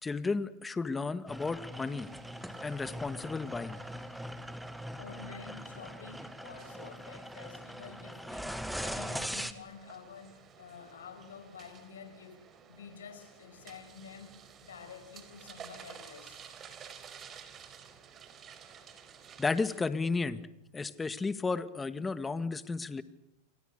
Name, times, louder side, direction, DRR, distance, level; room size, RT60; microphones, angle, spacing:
voice 1, 0.0-2.1 2.6-3.8 19.4-20.4 20.7-23.0, left 4 dB, 15° left, 1.9 m, -33 dB
sound 1, 1.3-9.5, equal, ahead, 2.0 m, -41 dB
sound 2, 1.7-19.8, right 7 dB, 30° right, 4.4 m, -54 dB
voice 2, 5.0-16.5, left 6 dB, 90° left, 6.0 m, -50 dB
29.0 x 24.5 x 6.8 m
hypercardioid pair, 110°, 0 cm